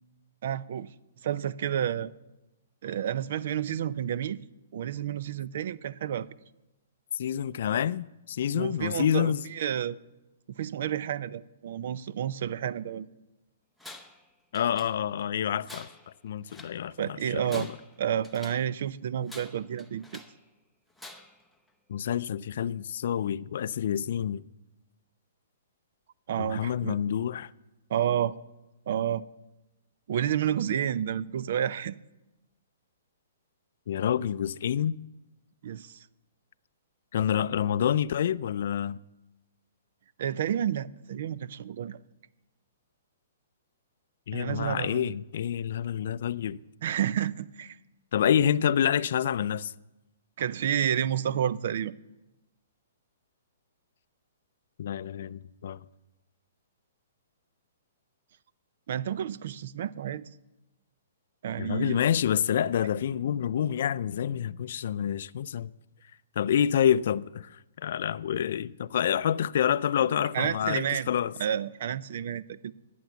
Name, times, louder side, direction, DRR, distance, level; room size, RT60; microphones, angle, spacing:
voice 1, 0.4-0.9 1.2-2.1 2.8-4.4 4.7-6.3 8.5-10.0 10.6-13.1 17.0-17.7 18.0-20.2 26.3-27.0 27.9-28.4 28.9-29.2 30.1-32.0 35.6-35.9 40.2-42.0 44.3-45.1 46.8-47.8 50.4-52.0 58.9-60.2 61.4-62.0 70.3-71.1 71.4-72.7, right 9 dB, 60° right, 0.5 m, -30 dB
voice 2, 7.1-9.4 14.5-15.9 16.2-17.7 21.9-24.4 26.4-27.5 33.9-35.0 37.1-39.0 44.3-46.6 48.1-49.7 54.8-55.8 61.6-65.7 66.4-71.3, left 9 dB, 60° left, 0.4 m, -28 dB
Tools, 13.8-14.3 14.6-15.3 15.6-16.8 17.3-18.7 19.3-20.4 21.0-21.5, left 2 dB, ahead, 0.7 m, -48 dB
11.5 x 9.2 x 7.0 m
hypercardioid pair, 150°, 0 cm